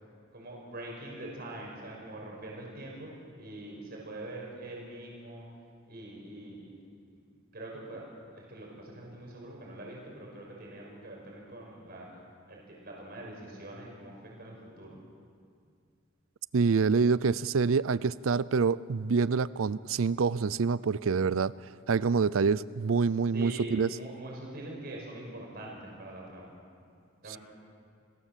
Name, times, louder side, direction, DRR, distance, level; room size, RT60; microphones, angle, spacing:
voice 1, 0.3-3.1 3.4-5.4 5.9-6.7 7.5-8.0 8.3-12.2 12.5-15.0 23.3-26.5 27.2-27.4, right 1 dB, 50° right, -2 dB, 5.9 m, -43 dB
voice 2, 16.5-21.5 21.9-23.9, right 5 dB, 80° right, 19 dB, 0.5 m, -26 dB
29.5 x 19.5 x 7.5 m, 2.3 s
head